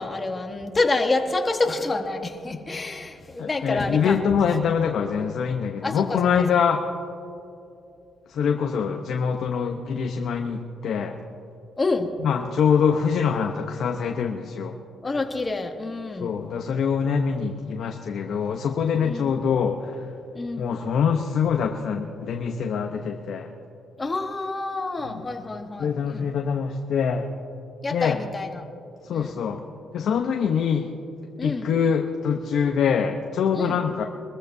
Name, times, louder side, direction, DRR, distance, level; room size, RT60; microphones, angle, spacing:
voice 1, 0.0-4.2 5.8-6.2 11.8-12.1 15.0-16.3 19.0-19.3 20.3-20.7 24.0-26.3 27.8-28.6 29.1-29.3 31.4-31.7 33.6-33.8, left 3 dB, 25° left, 4 dB, 1.4 m, -28 dB
voice 2, 3.4-6.8 8.3-11.2 12.2-14.7 16.2-20.1 20.6-23.5 25.0-25.2 25.8-27.3 27.9-28.2 29.0-29.6 29.9-30.9 31.4-34.0, left 6 dB, 65° left, 3 dB, 0.9 m, -24 dB
23.0 x 14.5 x 2.7 m, 2.6 s
cardioid pair, 90°, 0 cm